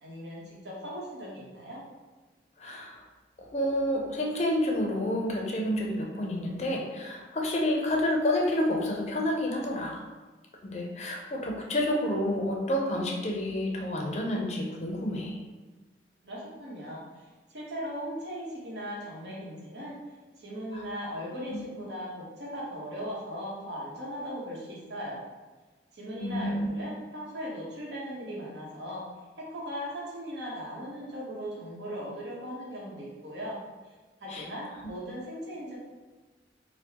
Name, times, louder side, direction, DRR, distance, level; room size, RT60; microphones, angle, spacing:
voice 1, 0.0-1.8 16.2-17.0 17.5-20.0 20.4-25.2 25.9-29.0 29.4-33.6 34.2-35.8, equal, 80° right, -4 dB, 1.0 m, -38 dB
voice 2, 2.6-3.0 3.5-10.0 10.6-15.4 20.7-20.9 21.5-21.6 26.2-26.7 34.3-34.4, left 1 dB, 40° left, 0 dB, 0.5 m, -29 dB
4.4 x 2.0 x 2.8 m, 1.3 s
head